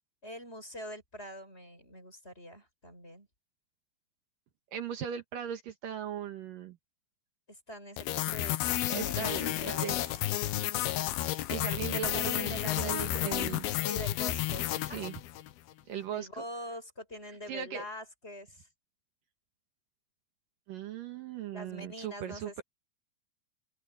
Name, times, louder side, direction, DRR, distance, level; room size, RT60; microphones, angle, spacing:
voice 1, 0.2-3.3 7.5-10.0 12.1-13.4 13.8-15.0 16.1-18.7 21.5-22.6, left 1 dB, 15° left, 5.9 m, -44 dB
voice 2, 4.7-6.8 8.9-10.0 11.5-13.7 14.8-15.2 15.9-16.4 17.5-17.8 20.7-22.6, right 9 dB, 70° right, 3.0 m, -38 dB
sound 1, 8.0-15.5, left 14 dB, 85° left, 2.9 m, -32 dB
open air
omnidirectional pair, 4.3 m